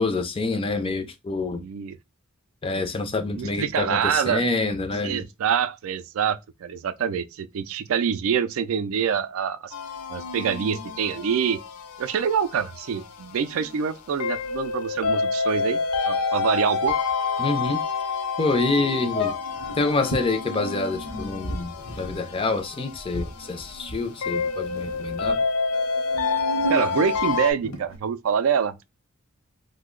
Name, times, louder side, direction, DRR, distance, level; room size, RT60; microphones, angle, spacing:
voice 1, 0.0-1.6 2.6-5.2 17.4-17.8 18.4-19.3 19.8-25.4, left 3 dB, 25° left, 0.4 m, -27 dB
voice 2, 1.5-2.0 3.3-4.4 5.0-9.7 10.1-11.6 12.0-15.8 16.1-16.9 26.7-28.9, right 7 dB, 70° right, 0.3 m, -25 dB
sound 1, 9.7-27.5, left 4 dB, 85° left, 0.5 m, -29 dB
sound 2, 19.1-20.3 20.9-24.4 24.7-25.3 26.0-28.0, equal, 60° left, 0.8 m, -33 dB
2.7 x 2.1 x 3.7 m
head